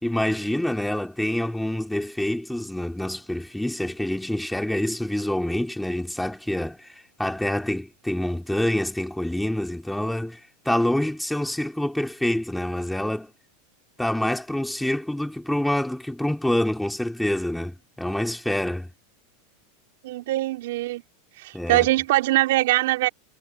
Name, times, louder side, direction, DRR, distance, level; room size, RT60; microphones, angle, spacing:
voice 1, 0.0-6.9 7.2-10.4 10.7-13.3 14.0-18.9 21.5-21.9, left 1 dB, 5° left, 3.9 m, -26 dB
voice 2, 20.0-21.0 21.4-23.1, right 17 dB, 70° right, 4.1 m, -22 dB
hypercardioid pair, 120°, 0 cm